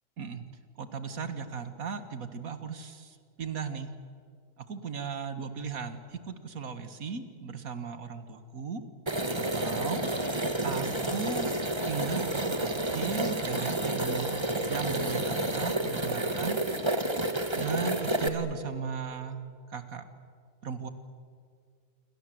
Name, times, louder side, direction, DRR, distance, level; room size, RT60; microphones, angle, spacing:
voice 1, 0.8-3.9 4.6-8.9 9.4-10.1 10.6-11.5 11.9-16.6 17.6-19.4 19.7-20.0 20.6-20.9, right 6 dB, 45° right, 10 dB, 2.0 m, -37 dB
sound 1, 9.1-18.3, right 1 dB, 15° right, 1.4 m, -30 dB
27.5 x 25.0 x 7.9 m, 2.1 s
omnidirectional pair, 2.1 m